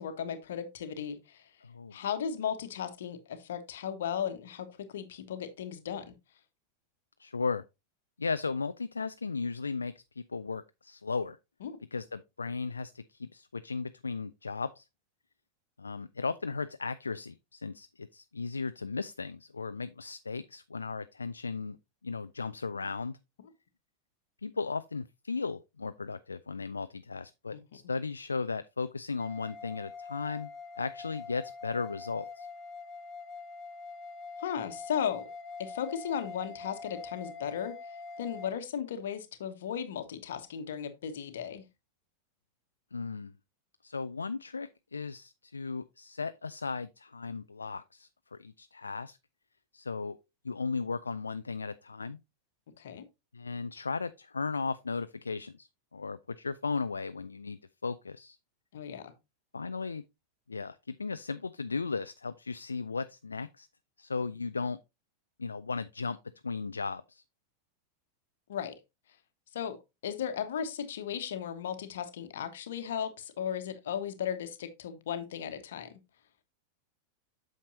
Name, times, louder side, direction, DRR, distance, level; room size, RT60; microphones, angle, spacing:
voice 1, 0.0-1.4 1.9-6.1 11.6-11.8 27.5-27.6 34.4-35.2 35.6-37.8 38.2-41.6 52.8-53.0 58.7-59.1 68.5-68.7 69.5-69.8 70.0-75.9, left 8 dB, 60° left, 1.2 m, -36 dB
voice 2, 1.6-1.9 7.2-7.6 8.2-11.4 11.9-14.8 15.8-21.8 22.0-23.2 24.4-30.5 30.8-32.5 42.9-43.3 43.8-48.1 48.4-49.2 49.7-50.2 50.4-52.2 53.3-58.4 59.5-60.0 60.5-63.7 64.0-64.8 65.4-66.2 66.4-67.2, left 4 dB, 75° left, 0.3 m, -36 dB
sound 1, 29.2-38.5, left 4 dB, 25° left, 1.3 m, -44 dB
8.4 x 6.5 x 2.7 m
figure-of-eight pair, 90°, 0 cm